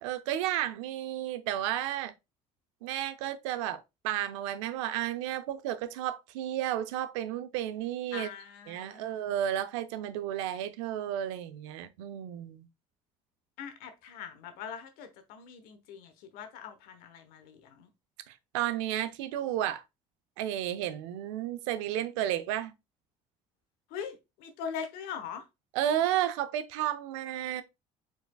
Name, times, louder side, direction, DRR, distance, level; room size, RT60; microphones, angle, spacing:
voice 1, 0.0-2.1 2.8-8.3 8.7-12.7 18.3-19.8 20.4-22.7 25.7-27.6, right 11 dB, 90° right, 0.5 m, -32 dB
voice 2, 8.1-9.3 13.6-17.9 23.9-25.4, left 7 dB, 80° left, 1.0 m, -42 dB
4.6 x 4.1 x 2.3 m
supercardioid pair, 75°, 15 cm